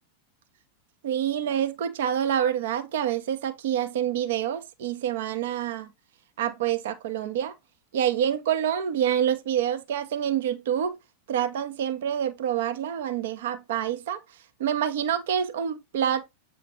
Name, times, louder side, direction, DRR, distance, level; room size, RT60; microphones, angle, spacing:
voice 1, 1.0-5.9 6.4-7.5 7.9-11.0 11.3-14.2 14.6-16.3, right 9 dB, 55° right, 0.9 m, -27 dB
8.2 x 3.1 x 3.7 m
figure-of-eight pair, 90°, 0 cm